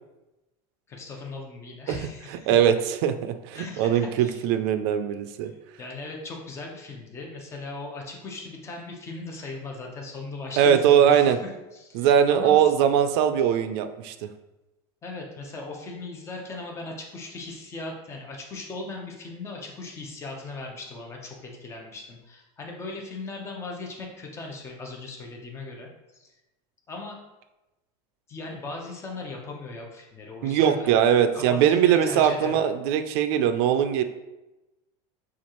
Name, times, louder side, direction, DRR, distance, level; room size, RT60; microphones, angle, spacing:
voice 1, 0.9-2.5 3.5-4.4 5.4-12.6 15.0-25.9 26.1-26.3 26.9-27.2 28.3-31.0 31.3-32.6, left 3 dB, 20° left, 0 dB, 0.7 m, -38 dB
voice 2, 2.5-5.5 10.6-11.4 11.9-14.1 30.4-34.0, right 9 dB, 65° right, 9 dB, 0.5 m, -21 dB
7.1 x 2.5 x 3.0 m, 1.0 s
cardioid pair, 160°, 14 cm